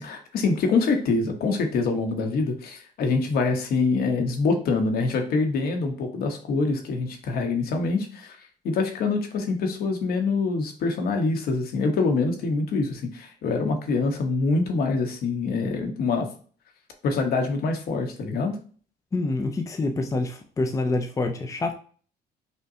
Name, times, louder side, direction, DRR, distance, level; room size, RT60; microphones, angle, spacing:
voice 1, 0.0-16.3 17.0-18.6, left 3 dB, 65° left, 4 dB, 1.1 m, -25 dB
voice 2, 19.1-21.8, left 2 dB, 20° left, 4 dB, 0.5 m, -26 dB
5.4 x 2.2 x 2.7 m, 0.42 s
cardioid pair, 110°, 17 cm